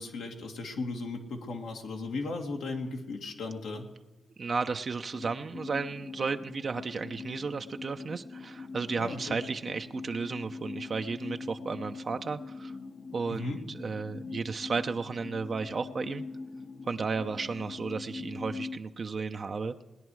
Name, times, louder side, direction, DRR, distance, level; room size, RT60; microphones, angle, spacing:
voice 1, 0.0-3.9 9.0-9.4 13.3-13.6, left 3 dB, 80° left, 1 dB, 1.9 m, -36 dB
voice 2, 4.4-12.7 13.1-16.2 16.8-19.8, right 4 dB, 50° right, 7 dB, 0.7 m, -33 dB
sound 1, 5.1-18.8, left 4 dB, 50° left, 0.7 m, -43 dB
19.5 x 10.0 x 4.7 m, 1.1 s
supercardioid pair, 55°, 0 cm